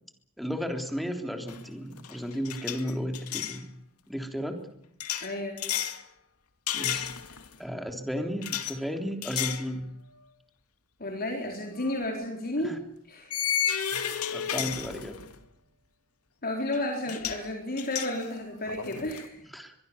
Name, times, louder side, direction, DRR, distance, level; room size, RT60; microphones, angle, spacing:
voice 1, 0.4-3.7 4.1-4.6 6.7-7.1 7.6-9.8 12.6-12.8 13.9-14.0 14.3-15.2 19.5-19.7, equal, ahead, 5 dB, 3.4 m, -34 dB
sound 1, 1.5-1.7 2.0-3.6 5.0-6.0 6.7-7.5 8.4-8.7 9.2-9.7 10.1-10.3 11.8-11.9 13.3-15.4 16.7-16.8 17.1-17.4 17.8-19.2, left 9 dB, 85° left, 2.3 m, -32 dB
voice 2, 5.2-5.7 11.0-12.8 13.1-13.3 16.4-19.4, left 1 dB, 45° left, 1 dB, 4.3 m, -32 dB
23.5 x 23.0 x 7.2 m, 0.74 s
head